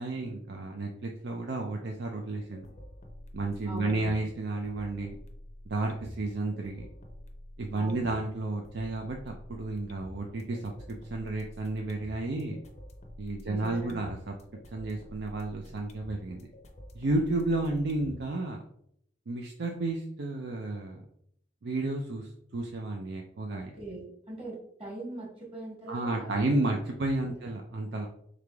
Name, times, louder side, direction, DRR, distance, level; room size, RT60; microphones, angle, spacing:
voice 1, 0.0-2.6 3.3-5.2 5.7-6.9 7.6-10.6 11.1-12.6 13.2-14.2 14.7-16.5 16.9-18.6 19.3-21.0 21.6-23.7 25.9-28.1, right 2 dB, 60° right, 2 dB, 0.5 m, -32 dB
sound 1, 2.3-18.3, left 1 dB, 35° left, 0.6 m, -48 dB
voice 2, 3.6-4.2 7.7-8.1 13.4-14.0 23.5-26.8 27.2-27.4, right 2 dB, 30° right, -4 dB, 1.6 m, -41 dB
3.7 x 3.3 x 3.4 m, 0.70 s
head